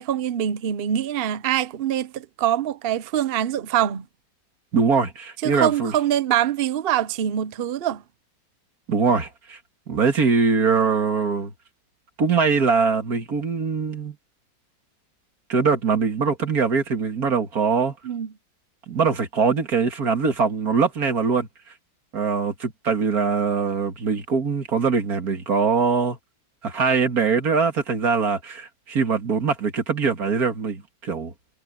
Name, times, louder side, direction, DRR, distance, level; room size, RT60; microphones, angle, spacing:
voice 1, 0.0-4.0 5.4-8.0 18.0-18.3, right 10 dB, 70° right, 0.5 m, -24 dB
voice 2, 4.7-5.9 8.9-9.6 9.9-11.5 12.2-14.2 15.5-17.9 18.9-21.5 22.1-26.2 26.6-31.3, right 5 dB, 50° right, 2.4 m, -22 dB
omnidirectional pair, 2.0 m